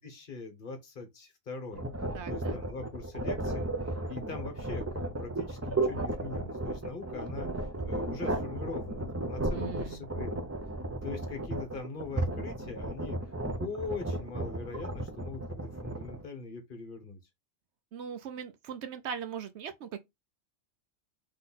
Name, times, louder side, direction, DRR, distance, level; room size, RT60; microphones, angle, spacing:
voice 1, 0.0-1.9 2.3-10.5 11.0-17.2, left 4 dB, 45° left, 1.1 m, -42 dB
sound 1, 1.7-16.2, right 2 dB, 15° right, 0.5 m, -34 dB
voice 2, 2.1-2.6 9.5-10.1 17.9-20.0, right 7 dB, 65° right, 0.8 m, -40 dB
3.8 x 3.1 x 4.1 m
omnidirectional pair, 1.4 m